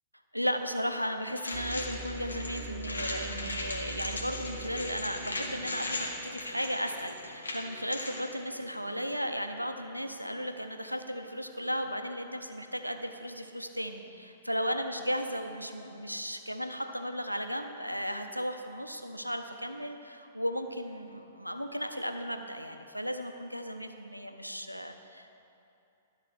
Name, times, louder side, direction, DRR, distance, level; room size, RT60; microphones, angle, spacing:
voice 1, 0.3-25.3, equal, 90° right, 6 dB, 0.6 m, -35 dB
sound 1, 1.4-8.2, left 2 dB, 75° left, 1.2 m, -38 dB
sound 2, 1.5-11.5 11.9-12.0 12.7-13.1, right 1 dB, 20° right, 1.6 m, -45 dB
12.0 x 4.1 x 6.4 m, 2.7 s
figure-of-eight pair, 110°, 0 cm